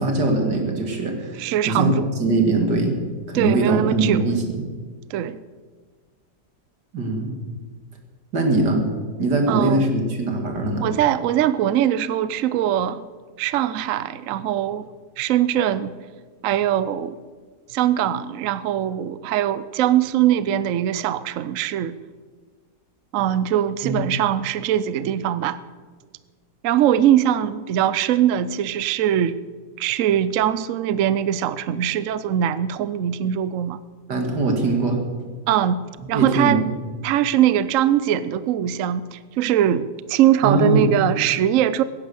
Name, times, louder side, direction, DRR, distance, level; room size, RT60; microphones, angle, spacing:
voice 1, 0.0-2.9 3.3-4.7 6.9-7.3 8.3-8.8 9.2-10.8 23.8-24.0 34.1-35.0 36.1-36.6 40.4-40.9, right 2 dB, 90° right, 3 dB, 2.7 m, -21 dB
voice 2, 1.4-2.1 3.3-4.2 5.1-5.4 9.5-9.9 10.8-13.0 13.4-14.9 15.2-15.9 16.4-17.2 17.7-22.0 23.1-25.6 26.6-29.4 29.8-33.8 35.5-35.8 36.1-36.7 37.0-41.8, right 11 dB, 65° right, 15 dB, 0.9 m, -21 dB
16.5 x 10.0 x 7.0 m, 1.5 s
omnidirectional pair, 1.8 m